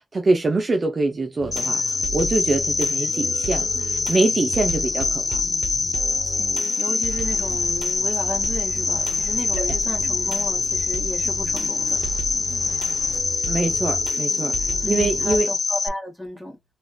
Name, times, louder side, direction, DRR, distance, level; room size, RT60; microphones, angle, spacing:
voice 1, 0.0-5.4 13.5-15.5, right 3 dB, 35° right, 0.5 m, -24 dB
sound 1, 1.4-15.4, right 4 dB, 85° right, 0.6 m, -35 dB
Cricket, 1.5-15.9, left 4 dB, 40° left, 0.3 m, -24 dB
voice 2, 6.4-12.0 14.8-16.6, equal, ahead, 1.6 m, -34 dB
sound 2, 7.1-13.4, left 2 dB, 80° left, 0.7 m, -41 dB
3.3 x 2.4 x 2.2 m
wide cardioid pair, 115°, 0 cm